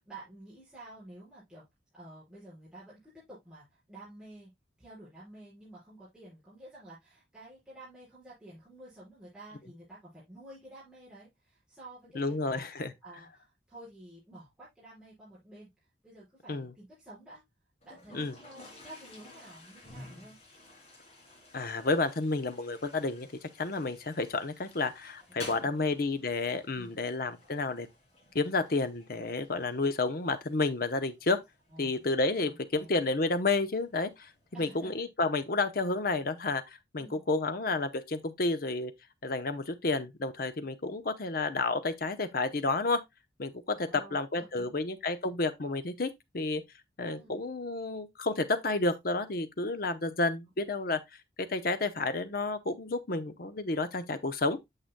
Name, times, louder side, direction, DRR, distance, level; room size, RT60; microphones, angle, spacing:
voice 1, 0.0-1.6 1.9-4.5 4.8-12.6 13.0-17.4 17.8-20.4 25.3-25.9 26.8-27.0 31.7-32.0 32.5-32.9 34.5-34.9 37.0-37.2 43.7-44.8 47.1-47.4, right 1 dB, 5° right, 5.6 m, -51 dB
voice 2, 12.1-12.9 16.5-16.7 18.1-18.3 21.5-23.3 23.6-27.9 28.3-31.4 31.8-34.3 34.6-38.9 39.2-43.0 43.4-46.6 47.0-51.0 51.4-54.6, left 3 dB, 55° left, 0.8 m, -31 dB
Toilet flush, 17.8-34.8, left 2 dB, 35° left, 3.0 m, -53 dB
8.8 x 6.8 x 2.2 m
head